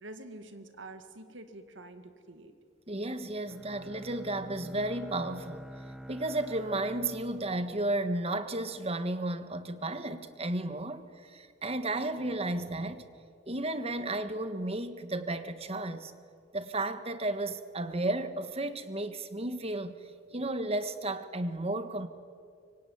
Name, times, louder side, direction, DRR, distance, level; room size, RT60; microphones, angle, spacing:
voice 1, 0.0-2.5, right 2 dB, 75° right, 8 dB, 2.3 m, -47 dB
voice 2, 2.9-5.7 6.1-13.0 13.5-16.1 16.5-20.0 20.3-22.1, right 2 dB, 35° right, 10 dB, 1.6 m, -33 dB
Bowed string instrument, 3.5-8.5, equal, 5° right, 0.9 m, -48 dB
25.0 x 23.5 x 9.5 m, 2.3 s
head